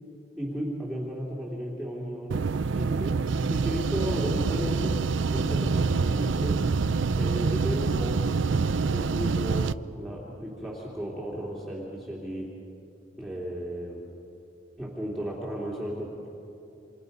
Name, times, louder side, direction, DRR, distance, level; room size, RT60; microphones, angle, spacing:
voice 1, 0.4-3.2 3.5-6.6 7.2-12.5 13.2-14.1 14.8-16.3, equal, ahead, -6 dB, 2.7 m, -34 dB
sound 1, 2.3-9.7, right 4 dB, 75° right, 0.5 m, -26 dB
27.5 x 27.5 x 5.4 m, 2.8 s
head